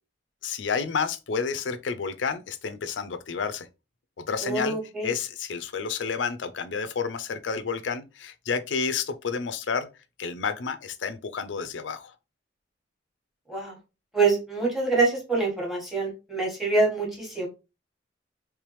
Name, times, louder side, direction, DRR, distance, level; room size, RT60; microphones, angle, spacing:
voice 1, 0.4-3.7 4.2-4.8 5.0-9.9 10.2-12.1, left 5 dB, 80° left, 0.5 m, -30 dB
voice 2, 4.4-5.1 13.5-13.7 14.1-17.5, right 3 dB, ahead, 1.3 m, -25 dB
3.3 x 3.3 x 3.0 m
head